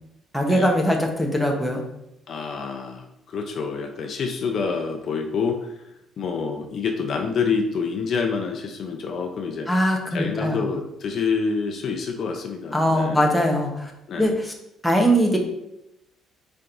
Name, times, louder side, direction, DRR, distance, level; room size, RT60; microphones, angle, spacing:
voice 1, 0.3-1.8 9.7-10.6 12.7-13.9 14.2-14.5 14.8-15.4, equal, ahead, 0 dB, 1.0 m, -21 dB
voice 2, 2.3-5.8 6.2-9.7 10.1-13.3 14.1-14.4, left 5 dB, 50° left, 4 dB, 0.7 m, -27 dB
8.2 x 4.5 x 2.6 m, 0.86 s
cardioid pair, 145°, 0 cm